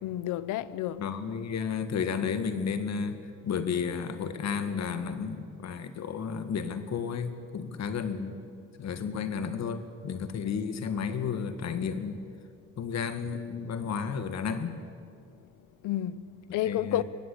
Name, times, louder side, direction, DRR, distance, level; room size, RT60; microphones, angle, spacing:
voice 1, 0.0-1.1 15.8-17.0, left 13 dB, 90° left, 0.8 m, -31 dB
voice 2, 1.0-3.2 3.4-8.4 8.8-12.2 12.8-14.8 16.7-17.0, left 6 dB, 60° left, 2.0 m, -32 dB
23.0 x 18.5 x 8.6 m
cardioid pair, 90°, 30 cm